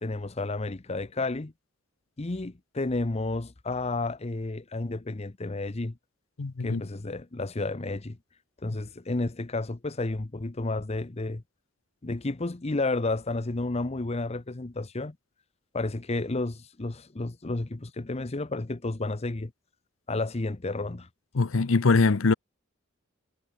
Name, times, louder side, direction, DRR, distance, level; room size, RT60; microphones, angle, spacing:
voice 1, 0.0-1.5 2.2-5.9 6.6-8.2 8.6-11.4 12.0-15.1 15.7-19.5 20.1-21.1, left 2 dB, 30° left, 0.8 m, -31 dB
voice 2, 6.4-6.8 21.3-22.3, left 3 dB, 85° left, 0.7 m, -22 dB
head